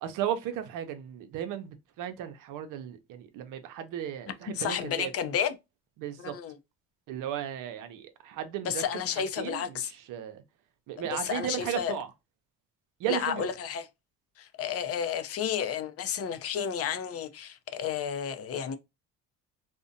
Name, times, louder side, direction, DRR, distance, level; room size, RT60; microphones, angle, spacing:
voice 1, 0.0-5.1 6.0-6.3 7.1-8.8 9.1-10.4 10.9-12.1 13.0-13.5, right 10 dB, 70° right, 0.6 m, -35 dB
voice 2, 4.5-5.6 6.2-6.5 8.6-9.9 11.1-12.0 13.1-13.9 14.4-18.8, left 8 dB, 45° left, 0.5 m, -31 dB
2.6 x 2.1 x 2.6 m
supercardioid pair, 85°, 33 cm